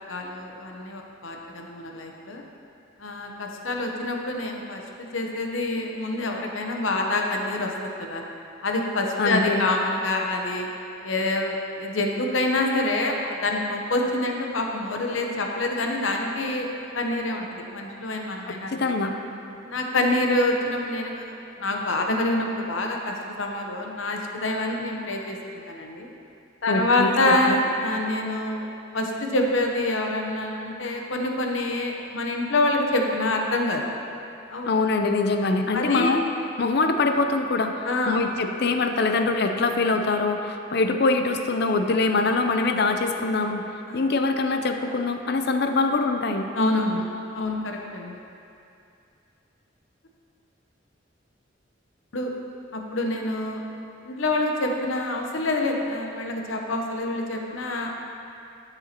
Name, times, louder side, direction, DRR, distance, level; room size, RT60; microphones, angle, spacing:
voice 1, 0.1-2.4 3.0-8.2 8.6-10.7 11.0-16.7 16.9-18.8 19.6-25.4 25.7-26.1 26.6-28.7 28.9-33.8 34.5-34.7 35.7-36.1 37.8-38.2 43.9-44.0 46.5-47.1 47.3-48.2 52.1-52.3 52.7-53.6 54.0-57.9, left 2 dB, 85° left, 1 dB, 0.8 m, -26 dB
voice 2, 9.2-9.7 18.5-19.1 26.7-27.6 34.7-36.2 36.6-43.6 43.9-46.5, left 3 dB, 55° left, 5 dB, 0.5 m, -24 dB
12.0 x 6.9 x 2.9 m, 2.6 s
head